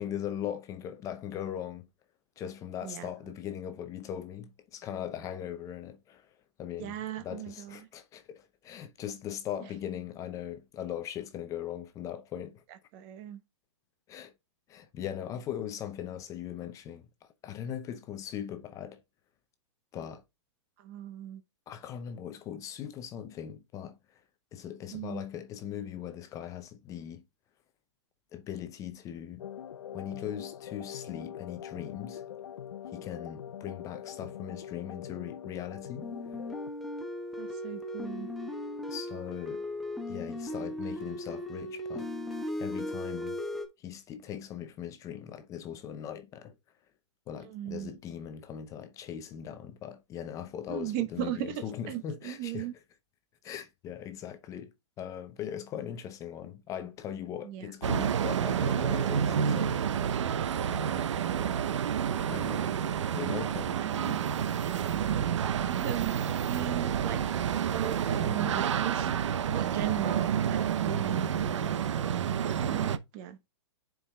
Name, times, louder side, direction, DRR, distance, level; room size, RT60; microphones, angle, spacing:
voice 1, 0.0-1.9 2.4-12.6 14.1-14.3 14.7-19.0 19.9-20.2 21.7-24.2 24.5-27.2 28.3-29.4 29.9-32.2 32.9-36.1 38.9-39.6 40.1-42.1 42.6-43.4 43.8-46.5 47.3-52.7 53.4-59.8 60.7-60.8 62.3-62.7 63.1-63.8 65.6-65.7, left 10 dB, 20° left, 0.6 m, -40 dB
voice 2, 2.8-3.1 6.8-7.9 12.7-13.4 20.8-21.4 24.9-25.3 37.4-38.3 47.4-48.0 50.7-52.7 57.4-57.7 60.3-61.9 62.1-63.0 63.8-64.3 64.6-65.2 65.7-66.2 66.4-67.2 67.6-69.1 69.5-71.7 72.4-73.4, right 11 dB, 35° right, 0.9 m, -38 dB
sound 1, 29.4-36.7, left 9 dB, 85° left, 0.5 m, -43 dB
sound 2, 36.0-43.6, left 1 dB, ahead, 1.0 m, -37 dB
sound 3, 57.8-73.0, right 8 dB, 80° right, 0.7 m, -29 dB
9.8 x 4.7 x 2.2 m
hypercardioid pair, 145°, 15 cm